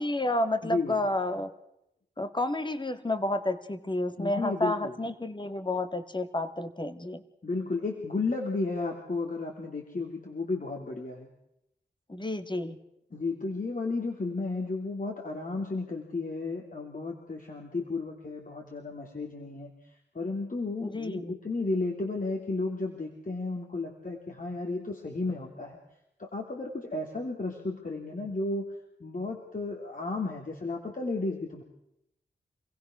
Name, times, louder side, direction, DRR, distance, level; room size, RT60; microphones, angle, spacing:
voice 1, 0.0-1.5 2.2-7.2 12.1-12.8 20.8-21.3, left 1 dB, 25° left, 9 dB, 2.0 m, -30 dB
voice 2, 0.6-1.0 4.2-4.9 7.4-11.3 13.1-25.8 26.2-28.7 29.0-31.6, left 3 dB, 50° left, 1 dB, 3.3 m, -33 dB
27.0 x 16.0 x 6.3 m, 0.83 s
cardioid pair, 45°, 18 cm